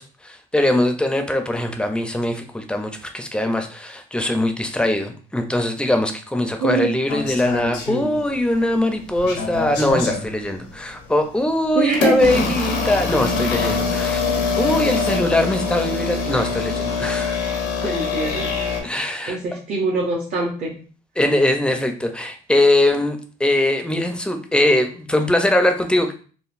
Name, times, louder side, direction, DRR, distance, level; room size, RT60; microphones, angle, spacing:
voice 1, 0.0-14.2 14.6-17.4 18.8-19.4 21.2-26.1, left 1 dB, 5° left, 5 dB, 0.4 m, -21 dB
voice 2, 6.6-6.9 11.7-12.3 17.8-18.5 19.3-20.8, right 3 dB, 50° right, -2 dB, 0.7 m, -23 dB
sound 1, 7.1-8.6 8.9-10.3 10.9-11.1 11.9-18.8, left 4 dB, 90° left, 0.8 m, -24 dB
3.7 x 2.0 x 2.5 m, 0.40 s
cardioid pair, 110°, 17 cm